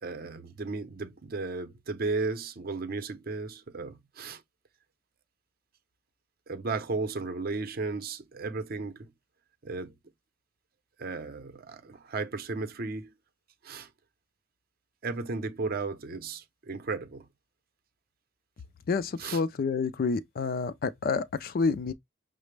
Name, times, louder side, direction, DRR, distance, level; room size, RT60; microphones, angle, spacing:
voice 1, 0.0-4.4 6.5-9.1 9.6-9.9 11.0-13.1 13.6-13.9 15.0-17.3 19.2-19.4, right 3 dB, 50° right, 0.6 m, -34 dB
voice 2, 18.9-21.9, left 4 dB, 50° left, 0.4 m, -29 dB
5.8 x 2.0 x 3.2 m
head